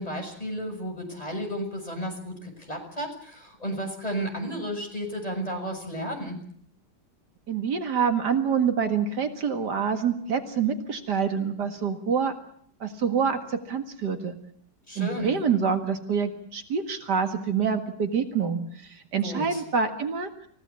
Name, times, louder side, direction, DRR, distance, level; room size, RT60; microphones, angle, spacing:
voice 1, 0.0-6.4 14.9-15.3 19.2-19.6, equal, 20° left, 2 dB, 6.7 m, -33 dB
voice 2, 7.5-12.4 12.8-14.4 15.0-18.6 19.1-20.3, right 6 dB, 75° right, 6 dB, 2.5 m, -26 dB
28.5 x 16.5 x 8.5 m, 0.63 s
omnidirectional pair, 1.8 m